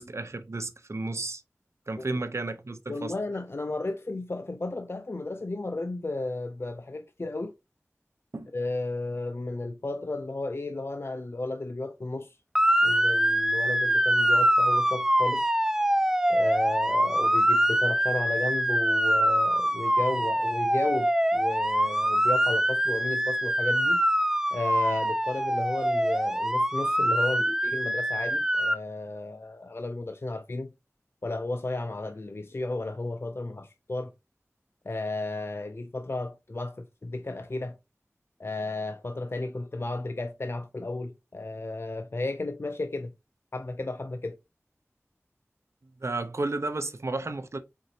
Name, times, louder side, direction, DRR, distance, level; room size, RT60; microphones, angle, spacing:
voice 1, 0.0-1.4 1.9-3.1 8.3-8.5 46.0-47.6, right 2 dB, 65° right, 0.6 m, -32 dB
voice 2, 2.9-7.5 8.5-12.4 12.8-15.5 16.3-24.0 24.5-30.7 31.2-34.1 34.9-37.8 38.4-43.1 43.5-44.4, left 2 dB, 50° left, 0.4 m, -33 dB
Motor vehicle (road) / Siren, 12.5-28.8, equal, 10° right, 0.4 m, -24 dB
4.6 x 3.8 x 2.7 m
wide cardioid pair, 50°, 5 cm